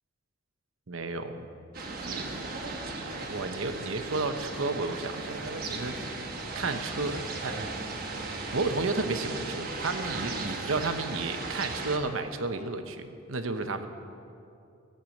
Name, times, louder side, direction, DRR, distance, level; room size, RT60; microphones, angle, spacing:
voice 1, 0.9-1.5 2.0-2.4 2.7-7.9 8.2-13.9, right 3 dB, 85° right, 8 dB, 0.9 m, -33 dB
sound 1, 1.7-12.0, right 3 dB, 45° right, 1.3 m, -36 dB
15.0 x 6.8 x 7.7 m, 2.6 s
head